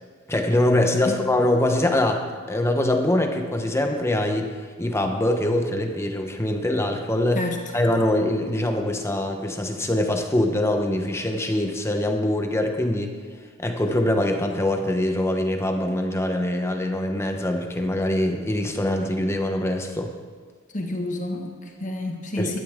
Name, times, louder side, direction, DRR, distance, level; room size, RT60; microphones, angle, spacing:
voice 1, 0.3-4.5 4.8-7.5 7.7-13.2 13.6-20.1 22.4-22.6, left 1 dB, 15° left, 4 dB, 1.0 m, -23 dB
voice 2, 20.7-22.6, left 2 dB, 40° left, 2 dB, 1.5 m, -29 dB
16.0 x 12.5 x 3.7 m, 1.5 s
head